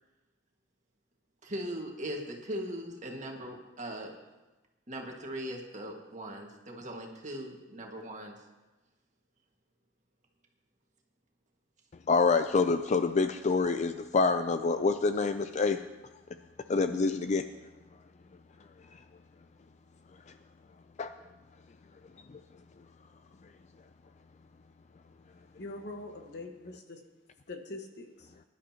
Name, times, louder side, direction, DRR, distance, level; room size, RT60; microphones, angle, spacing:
voice 1, 1.4-4.1 4.9-8.3, equal, 40° right, 0 dB, 1.8 m, -39 dB
voice 2, 12.1-15.8 16.7-17.5 21.0-21.1, left 4 dB, 35° left, 9 dB, 0.4 m, -26 dB
voice 3, 25.6-27.0 27.5-28.3, left 2 dB, 60° left, 4 dB, 1.4 m, -43 dB
22.5 x 11.5 x 2.9 m, 1.1 s
head